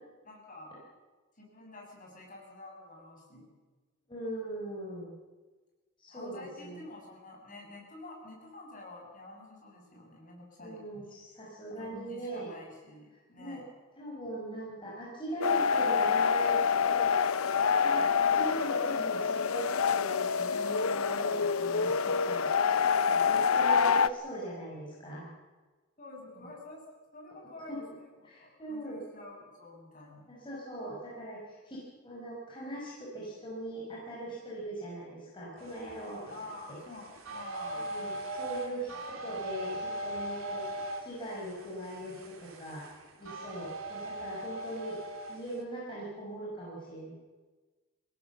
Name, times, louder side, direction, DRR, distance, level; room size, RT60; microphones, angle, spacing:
voice 1, 0.2-0.7 1.4-3.5 6.1-10.8 11.7-13.6 26.0-26.8 27.1-27.9 28.4-30.3 36.3-38.0 38.9-39.0, left 2 dB, 40° left, -1 dB, 7.0 m, -48 dB
voice 2, 4.1-5.1 6.0-6.3 6.6-6.8 10.6-12.5 13.4-13.6 14.0-17.1 17.6-22.5 23.1-25.3 27.7-27.8 28.2-29.0 30.3-36.2 37.7-40.7 41.0-42.8 43.2-45.0 45.3-47.1, right 1 dB, 25° left, -5 dB, 5.2 m, -40 dB
sound 1, 15.4-24.1, left 6 dB, 85° left, 0.7 m, -27 dB
sound 2, 35.6-45.6, right 1 dB, 75° right, 3.0 m, -40 dB
24.5 x 17.5 x 7.1 m, 1.3 s
head